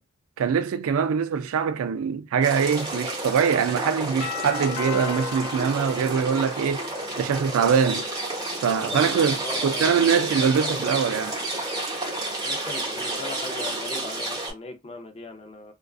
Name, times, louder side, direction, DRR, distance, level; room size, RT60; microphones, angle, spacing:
voice 1, 0.4-6.8 7.2-8.1 8.6-9.4 9.6-11.4, right 6 dB, 70° right, 0.3 m, -23 dB
sound 1, 2.4-14.5, right 2 dB, 20° right, 0.8 m, -30 dB
Doorbell, 4.2-7.0, left 9 dB, 80° left, 0.4 m, -36 dB
voice 2, 8.9-10.8 12.4-15.7, left 3 dB, 30° left, 0.5 m, -39 dB
2.4 x 2.2 x 2.3 m
head